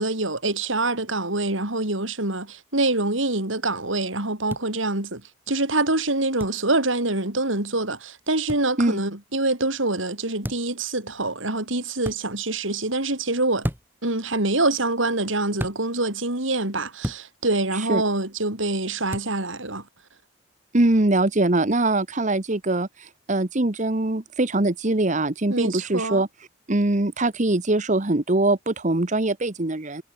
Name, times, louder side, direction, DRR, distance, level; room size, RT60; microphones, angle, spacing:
voice 1, 0.0-13.7 14.0-19.8 25.5-26.2, right 2 dB, 75° right, 5.0 m, -25 dB
sound 1, 4.5-4.6 6.4-6.6 8.5-8.7 10.4-10.8 12.0-12.2 13.6-14.0 15.6-15.8 17.0-17.3 19.1-19.3, equal, 10° right, 6.6 m, -31 dB
voice 2, 20.7-26.3 26.7-30.0, right 2 dB, 35° right, 1.1 m, -22 dB
head